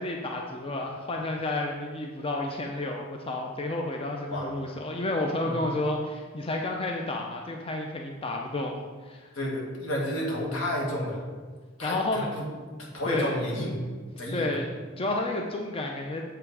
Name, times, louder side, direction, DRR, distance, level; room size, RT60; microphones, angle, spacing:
voice 1, 0.0-9.3 11.8-12.3 13.1-13.4 14.3-14.7 15.0-16.2, left 2 dB, 30° left, 1 dB, 0.5 m, -31 dB
voice 2, 9.3-11.2 11.8-12.4 12.8-13.8 14.2-14.5, left 1 dB, 80° left, -3 dB, 1.9 m, -31 dB
7.0 x 5.6 x 4.7 m, 1.5 s
head